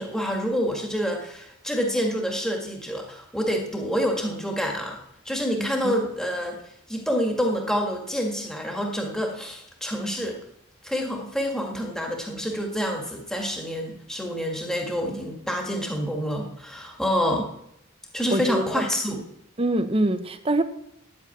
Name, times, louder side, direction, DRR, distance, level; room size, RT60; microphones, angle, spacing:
voice 1, 0.0-5.0 5.3-6.6 6.9-10.4 10.8-17.5 18.1-19.2, equal, 5° left, 1 dB, 1.8 m, -27 dB
voice 2, 5.6-5.9 18.3-18.8 19.6-20.6, right 1 dB, 30° right, 9 dB, 0.9 m, -24 dB
10.5 x 8.6 x 8.5 m, 0.77 s
head